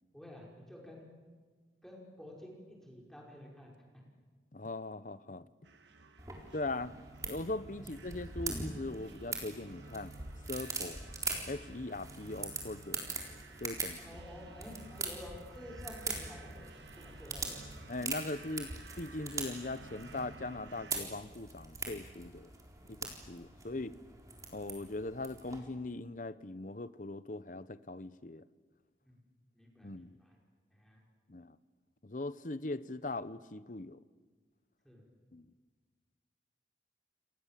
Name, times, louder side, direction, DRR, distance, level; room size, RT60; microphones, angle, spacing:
voice 1, 0.1-1.0 1.8-3.7 7.8-7.9 14.0-17.6 23.5-23.9 29.1-29.2 29.5-30.4 30.7-31.0 34.8-35.0, left 1 dB, ahead, 5.4 m, -51 dB
voice 2, 4.5-5.5 6.5-7.0 7.2-10.1 10.5-11.1 11.5-13.0 13.6-14.0 17.9-22.5 22.9-23.9 24.5-28.4 29.8-30.2 31.3-31.6 32.0-34.0 35.3-35.5, left 2 dB, 45° left, 0.9 m, -40 dB
sound 1, 5.6-21.0, right 3 dB, 75° right, 1.8 m, -54 dB
sound 2, 6.2-25.6, right 3 dB, 20° right, 4.0 m, -43 dB
29.5 x 26.5 x 7.6 m
head